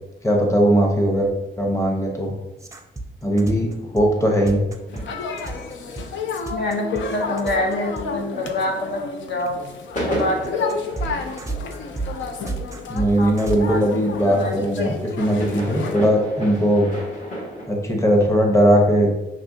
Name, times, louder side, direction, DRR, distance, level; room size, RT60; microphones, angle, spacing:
voice 1, 0.2-1.3 1.6-2.3 3.2-4.6 12.9-16.9 17.7-19.1, equal, 15° left, 1 dB, 0.9 m, -19 dB
sound 1, 2.6-8.0 8.4-8.5 9.4-13.6, right 3 dB, 15° right, 0.5 m, -31 dB
sound 2, 3.3-9.0 9.2-17.7, equal, 40° left, 1.3 m, -34 dB
sound 3, 4.9-16.0, left 5 dB, 90° left, 0.5 m, -32 dB
voice 2, 6.5-9.6 10.1-10.7 13.2-13.3 13.7-13.8 14.4-14.9, left 1 dB, 70° left, 1 dB, 0.9 m, -26 dB
5.9 x 3.3 x 2.7 m, 1.0 s
cardioid pair, 105°, 19 cm